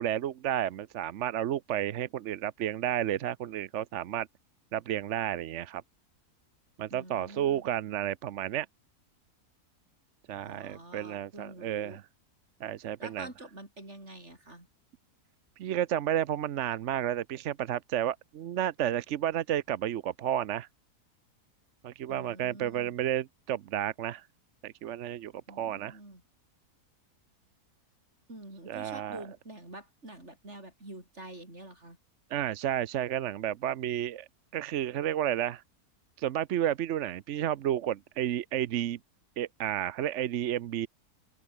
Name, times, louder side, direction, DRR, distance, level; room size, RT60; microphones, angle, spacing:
voice 1, 0.0-4.3 4.7-5.8 6.8-8.7 10.3-12.0 12.6-13.3 15.6-20.7 21.8-24.3 24.6-26.0 28.7-29.2 32.3-34.3 34.5-35.6 36.2-39.0 39.4-40.9, right 11 dB, 60° right, 0.9 m, -31 dB
voice 2, 6.9-7.6 10.5-12.0 13.0-14.7 22.1-23.0 25.5-26.2 28.3-32.0, right 1 dB, 45° right, 7.4 m, -47 dB
open air
omnidirectional pair, 1.7 m